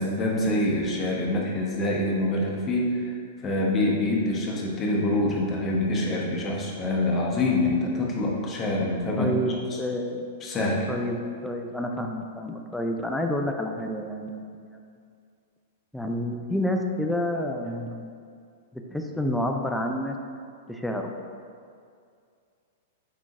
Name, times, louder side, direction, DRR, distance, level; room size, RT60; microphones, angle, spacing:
voice 1, 0.0-3.1 3.4-9.3 9.7-9.8 10.4-10.9, left 2 dB, 25° left, -2 dB, 0.8 m, -25 dB
voice 2, 9.2-10.3 10.9-14.8 15.9-18.1 18.7-20.2 20.7-21.1, left 1 dB, 5° left, 2 dB, 0.4 m, -29 dB
4.7 x 3.7 x 2.5 m, 2.3 s
hypercardioid pair, 105°, 0 cm